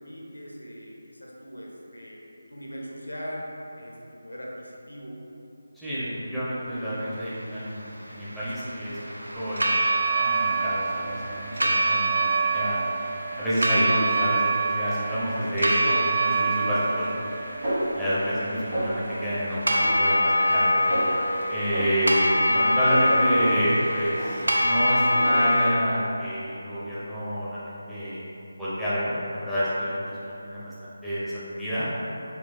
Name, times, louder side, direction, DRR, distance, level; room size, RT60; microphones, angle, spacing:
voice 1, 0.0-2.2 2.5-5.2 15.7-15.9, equal, 80° left, -3 dB, 0.7 m, -40 dB
voice 2, 5.7-9.6 10.2-12.8 13.4-17.1 17.9-20.9 21.5-28.2 28.6-30.0 30.2-31.9, equal, ahead, -14 dB, 0.5 m, -28 dB
sound 1, 7.7-25.7, right 1 dB, 70° right, 0.5 m, -25 dB
Snare drum, 17.6-18.5 18.7-19.3 19.8-20.6 20.9-21.3 21.7-23.8 24.2-24.7 25.1-25.8, right 1 dB, 45° right, 1.3 m, -32 dB
4.1 x 2.3 x 3.3 m, 2.9 s
figure-of-eight pair, 155°, 0 cm